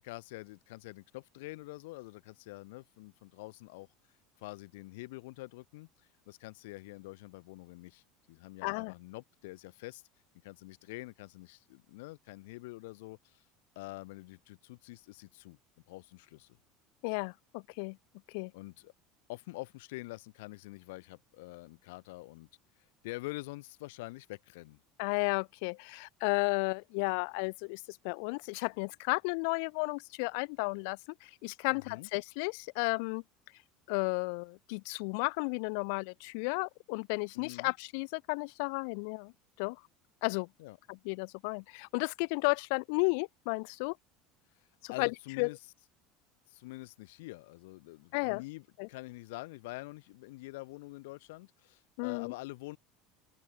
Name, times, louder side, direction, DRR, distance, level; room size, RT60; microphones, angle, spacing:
voice 1, 0.0-3.9 4.4-5.9 6.3-10.0 10.4-13.4 13.8-15.6 15.9-16.6 18.5-18.9 19.3-22.5 23.0-24.8 31.7-32.1 37.3-37.7 40.6-40.8 44.9-45.6 46.5-52.8, left 22 dB, 90° left, 1.9 m, -46 dB
voice 2, 8.6-8.9 17.0-18.0 18.3-18.5 25.0-33.2 33.9-39.3 39.6-39.8 40.2-40.5 40.9-43.9 44.8-45.1 45.4-45.5 48.1-48.4 48.8-48.9 52.0-52.3, left 36 dB, 70° left, 1.6 m, -33 dB
open air
cardioid pair, 165°, 0 cm